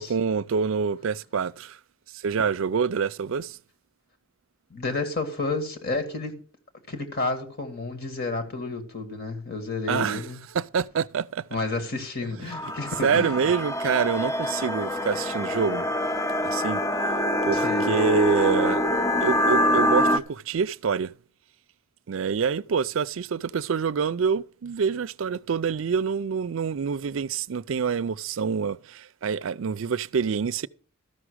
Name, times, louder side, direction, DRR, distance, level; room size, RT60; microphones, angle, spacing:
voice 1, 0.0-1.8 2.1-3.6 9.9-10.2 10.5-11.5 12.4-12.5 13.0-15.9 16.4-16.8 17.4-18.8 19.2-21.1 22.1-30.7, right 6 dB, 65° right, 0.4 m, -26 dB
voice 2, 4.7-6.4 6.9-10.4 11.5-13.4 17.5-17.9, left 3 dB, 50° left, 1.9 m, -31 dB
sound 1, 12.5-20.2, left 1 dB, 15° left, 0.5 m, -25 dB
13.5 x 6.1 x 6.2 m
head